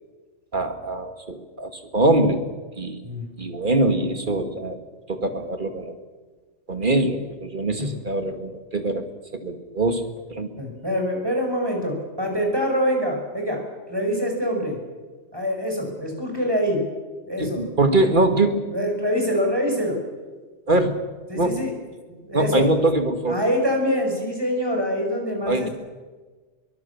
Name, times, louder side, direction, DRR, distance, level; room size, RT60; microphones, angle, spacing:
voice 1, 0.5-2.4 2.8-3.0 3.4-4.8 5.1-5.9 6.7-9.0 9.4-10.0 10.3-10.5 17.4-18.6 20.7-21.0 21.3-21.7 22.3-23.4 25.5-25.7, right 2 dB, 40° right, 7 dB, 2.3 m, -22 dB
voice 2, 10.6-13.6 13.9-14.8 15.3-16.8 17.3-17.6 18.7-20.0 21.3-21.7 22.2-22.7 23.3-25.7, equal, 20° right, 1 dB, 5.8 m, -25 dB
24.5 x 22.5 x 7.2 m, 1.4 s
omnidirectional pair, 1.3 m